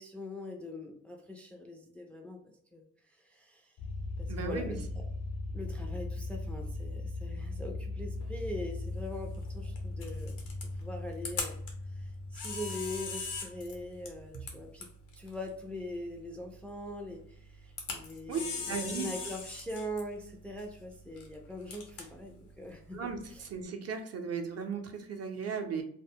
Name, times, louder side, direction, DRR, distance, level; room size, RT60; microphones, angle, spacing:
voice 1, 0.0-3.7 4.2-5.0 5.5-10.5 10.8-11.6 11.9-14.9 15.1-23.5, left 1 dB, 5° left, 1 dB, 0.3 m, -42 dB
sound 1, 3.8-14.4, left 2 dB, 60° left, 0.5 m, -39 dB
voice 2, 4.3-4.7 14.3-14.5 18.3-18.4 18.7-19.1 22.9-25.8, right 6 dB, 55° right, 4 dB, 0.6 m, -36 dB
Camera, 8.2-23.6, left 4 dB, 85° left, 0.8 m, -43 dB
2.1 x 2.0 x 3.4 m, 0.64 s
cardioid pair, 90°, 30 cm